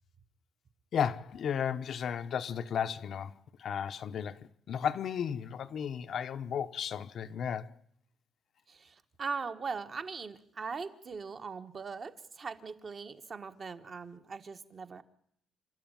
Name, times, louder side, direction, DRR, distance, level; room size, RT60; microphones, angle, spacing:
voice 1, 0.9-7.7, left 8 dB, 55° left, 0.9 m, -34 dB
voice 2, 8.7-15.0, right 5 dB, 35° right, 1.4 m, -40 dB
30.0 x 12.5 x 9.1 m
cardioid pair, 160°, 0 cm